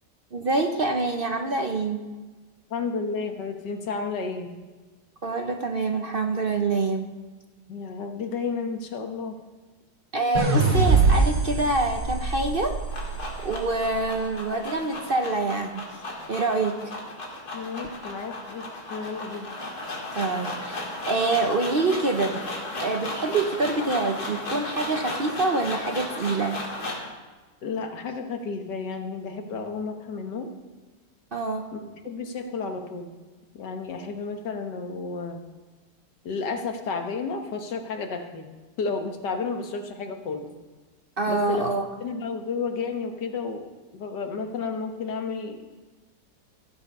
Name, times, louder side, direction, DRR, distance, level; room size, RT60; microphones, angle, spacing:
voice 1, 0.3-2.0 5.2-7.1 10.1-12.8 13.4-16.0 16.3-16.9 20.1-20.8 21.1-22.4 22.8-26.6 31.3-31.7 41.2-41.9, right 3 dB, 45° right, 4 dB, 0.7 m, -26 dB
voice 2, 2.7-4.5 7.7-9.4 17.5-19.5 27.6-30.5 31.7-33.1 33.5-35.4 36.2-38.5 38.8-40.5 41.3-41.7 42.0-43.7 43.9-45.6, left 4 dB, 90° left, 5 dB, 1.9 m, -32 dB
sound 1, 10.4-13.6, right 4 dB, 65° right, 2.5 m, -23 dB
sound 2, 12.5-27.1, left 2 dB, 65° left, 2.8 m, -35 dB
15.0 x 7.8 x 5.4 m, 1.3 s
omnidirectional pair, 1.8 m